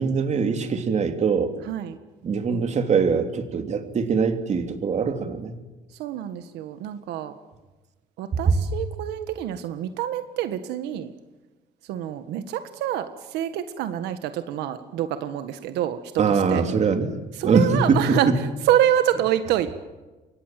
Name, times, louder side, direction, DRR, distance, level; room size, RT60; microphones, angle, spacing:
voice 1, 0.0-1.5 2.2-5.5 8.5-8.6 16.2-17.1 17.4-18.3, right 5 dB, 40° right, 6 dB, 3.1 m, -22 dB
voice 2, 1.6-2.0 6.0-7.3 8.2-11.1 11.9-16.6 17.3-19.7, right 11 dB, 90° right, 9 dB, 1.5 m, -26 dB
28.5 x 23.5 x 7.6 m, 1.2 s
cardioid pair, 110°, 17 cm